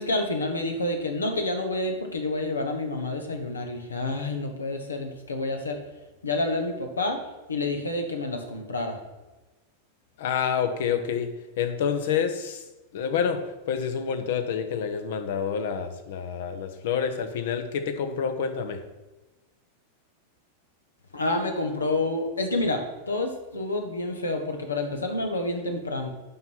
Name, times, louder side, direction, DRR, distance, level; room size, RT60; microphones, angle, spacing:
voice 1, 0.0-5.8 6.2-7.2 7.5-9.0 21.1-26.1, left 2 dB, 75° left, 4 dB, 1.5 m, -28 dB
voice 2, 10.2-11.3 11.6-12.7 12.9-18.8, left 7 dB, 55° left, 8 dB, 1.1 m, -28 dB
9.2 x 5.9 x 6.2 m, 1.1 s
figure-of-eight pair, 90°, 0 cm